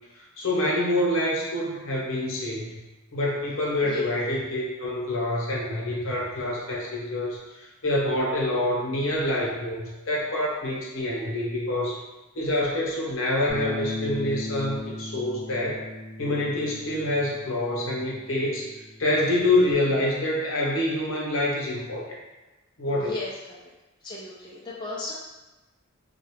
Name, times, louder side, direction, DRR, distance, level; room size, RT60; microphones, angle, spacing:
voice 1, 0.1-2.8 3.1-12.0 12.3-15.9 16.2-18.7 19.0-22.2 22.8-23.1, left 1 dB, 65° left, -4 dB, 0.8 m, -26 dB
Bass guitar, 13.5-19.7, left 2 dB, 30° right, 0.8 m, -37 dB
voice 2, 22.9-23.6 24.0-25.1, left 2 dB, 20° left, -6 dB, 0.3 m, -35 dB
3.6 x 2.2 x 3.5 m, 1.1 s
head